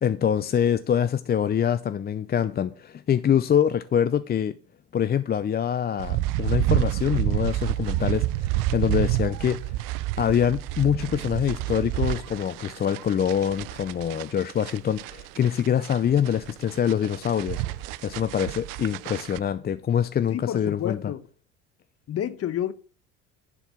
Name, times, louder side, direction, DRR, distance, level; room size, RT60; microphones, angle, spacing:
voice 1, 0.0-4.5 4.9-9.6 10.2-17.6 18.0-21.0, left 9 dB, 30° left, 0.5 m, -25 dB
sound 1, 6.0-19.4, right 16 dB, 70° right, 0.6 m, -29 dB
voice 2, 20.3-21.3 22.1-22.7, left 11 dB, 45° left, 1.0 m, -29 dB
10.5 x 4.6 x 5.8 m
hypercardioid pair, 70°, 34 cm